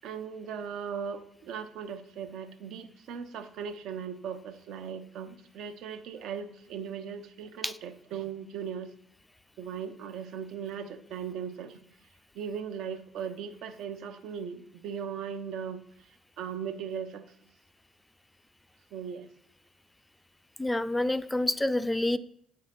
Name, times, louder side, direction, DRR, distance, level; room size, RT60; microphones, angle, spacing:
voice 1, 0.0-8.9 9.6-11.9 12.3-17.3 18.9-19.3, right 7 dB, 75° right, 0.9 m, -38 dB
voice 2, 20.6-22.2, left 1 dB, 10° left, 0.3 m, -27 dB
7.7 x 4.8 x 5.8 m
cardioid pair, 95°, 0 cm